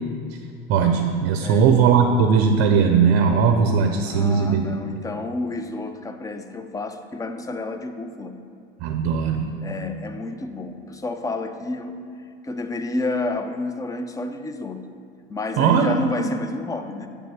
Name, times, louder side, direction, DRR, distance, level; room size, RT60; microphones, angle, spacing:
voice 1, 0.7-4.8 8.8-9.5 15.6-16.3, right 6 dB, 50° right, 5 dB, 0.6 m, -19 dB
voice 2, 1.4-1.8 4.0-8.4 9.6-12.0 12.4-14.9 15.3-17.1, left 2 dB, 10° left, 8 dB, 0.4 m, -30 dB
8.4 x 3.5 x 6.0 m, 2.4 s
hypercardioid pair, 85°, 31 cm